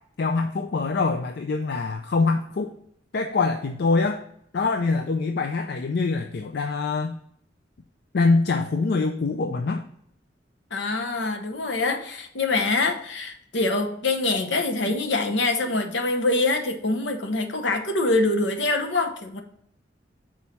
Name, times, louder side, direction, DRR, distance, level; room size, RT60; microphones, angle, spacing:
voice 1, 0.2-2.7 3.1-4.2 4.5-7.2 8.1-9.8, left 3 dB, 55° left, 6 dB, 0.4 m, -24 dB
voice 2, 10.7-19.4, left 2 dB, 75° left, 5 dB, 0.9 m, -24 dB
6.2 x 4.4 x 4.2 m, 0.70 s
head